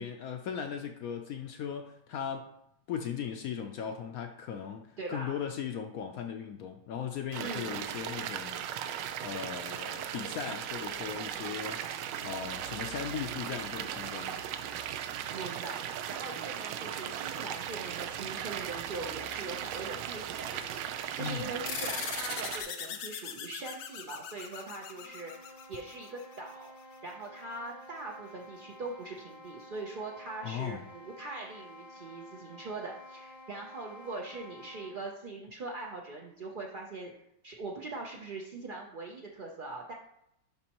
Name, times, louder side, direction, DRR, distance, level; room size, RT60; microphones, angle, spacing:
voice 1, 0.0-2.5 2.9-11.8 12.2-14.4 21.2-21.5 30.4-30.8, left 7 dB, 70° left, 5 dB, 0.9 m, -38 dB
voice 2, 5.0-5.4 7.4-7.8 15.3-26.7 27.0-37.1 37.4-39.9, right 3 dB, 60° right, -1 dB, 0.5 m, -42 dB
sound 1, 7.3-22.6, right 9 dB, 90° right, 1.2 m, -37 dB
sound 2, 21.7-26.5, left 8 dB, 85° left, 1.4 m, -40 dB
sound 3, 24.9-35.1, left 1 dB, 20° left, 0.8 m, -51 dB
11.5 x 4.2 x 2.9 m, 0.79 s
omnidirectional pair, 1.9 m